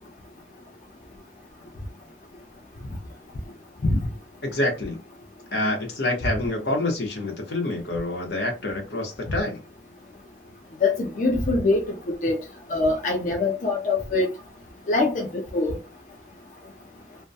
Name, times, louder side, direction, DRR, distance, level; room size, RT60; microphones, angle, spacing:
voice 1, 4.4-5.0 5.5-9.6, left 2 dB, 75° left, 0.9 m, -27 dB
voice 2, 10.8-12.0 12.2-12.4 12.7-14.3 14.9-15.3 15.5-15.8, left 3 dB, 45° left, 0.4 m, -23 dB
2.2 x 2.1 x 2.6 m
head